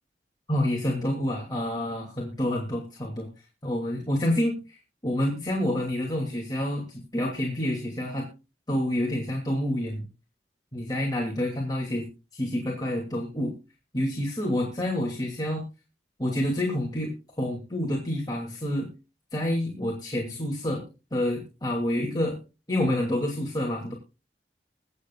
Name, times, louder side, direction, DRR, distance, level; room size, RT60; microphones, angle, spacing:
voice 1, 0.5-8.3 8.7-10.0 10.7-13.5 13.9-15.6 16.2-18.9 19.3-20.8 21.1-22.4 22.7-23.9, left 1 dB, 20° left, -2 dB, 2.9 m, -28 dB
23.5 x 8.0 x 2.5 m, 0.30 s
head